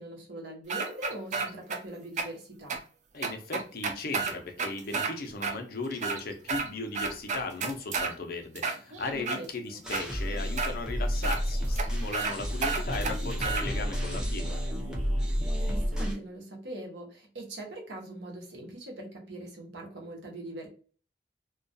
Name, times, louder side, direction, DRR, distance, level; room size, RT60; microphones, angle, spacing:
voice 1, 0.0-2.8 8.9-9.5 15.6-20.7, right 1 dB, 90° right, 0 dB, 0.9 m, -42 dB
sound 1, 0.7-1.8 2.2-2.3 2.7-2.8 3.2-5.1 5.4-5.5 5.9-6.7 6.9-8.1 8.6-9.4 9.9-10.0 10.6-10.7 11.2-11.4 11.8-11.9 12.1-12.3 12.6-13.6, right 4 dB, 45° right, 0.4 m, -31 dB
voice 2, 3.1-14.5, left 3 dB, 55° left, 4 dB, 0.5 m, -37 dB
sound 2, 9.8-16.2, equal, 5° right, 0.6 m, -30 dB
2.3 x 2.2 x 2.6 m, 0.40 s
head